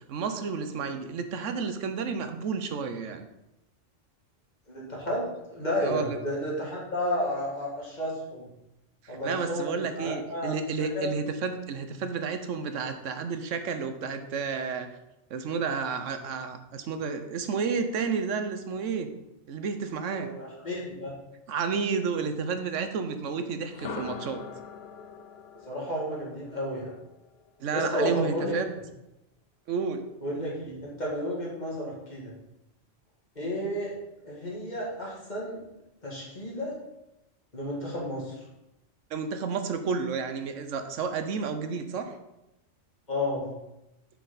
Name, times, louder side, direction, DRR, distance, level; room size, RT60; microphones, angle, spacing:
voice 1, 0.1-3.3 5.8-6.2 9.0-14.9 15.3-19.1 19.5-20.3 21.5-24.4 27.6-28.7 29.7-30.0 39.1-42.2, right 5 dB, 90° right, 8 dB, 1.1 m, -31 dB
voice 2, 4.7-8.5 9.1-11.2 20.1-21.2 25.6-26.9 27.7-28.6 30.2-32.3 33.4-33.9 34.2-35.6 36.0-36.8 37.5-38.4 43.1-43.5, equal, 35° left, -4 dB, 2.4 m, -32 dB
sound 1, 23.6-27.6, left 6 dB, 60° left, 0.9 m, -42 dB
7.2 x 6.2 x 4.0 m, 0.91 s
omnidirectional pair, 1.2 m